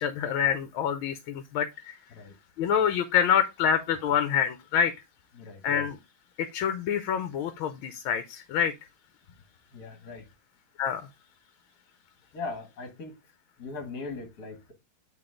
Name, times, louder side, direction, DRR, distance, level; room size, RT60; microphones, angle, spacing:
voice 1, 0.0-2.0 2.6-4.9 5.6-6.0 6.4-8.7 10.8-11.1, left 8 dB, 80° left, 1.5 m, -26 dB
voice 2, 9.7-10.2 12.3-13.1 13.6-14.7, left 3 dB, 50° left, 2.0 m, -39 dB
8.7 x 3.8 x 3.7 m
omnidirectional pair, 2.2 m